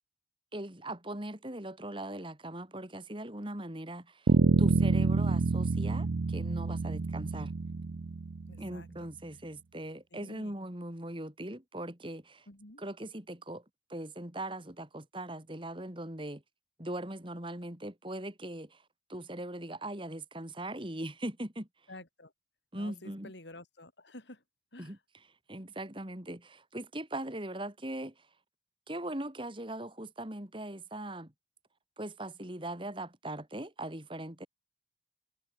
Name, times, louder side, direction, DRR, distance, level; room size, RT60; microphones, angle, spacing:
voice 1, 0.5-4.3 4.6-7.5 8.6-12.5 12.8-13.6 13.9-16.4 16.8-18.8 19.1-21.7 22.7-23.3 24.8-25.0 25.5-28.3 28.9-31.3 32.0-34.5, right 1 dB, 30° right, 2.8 m, -40 dB
Bass guitar, 4.3-8.7, right 3 dB, 75° right, 0.6 m, -27 dB
voice 2, 8.5-9.1 10.1-10.6 12.5-12.8 21.9-22.3 22.7-24.4 24.7-25.0, left 2 dB, 75° left, 4.8 m, -50 dB
head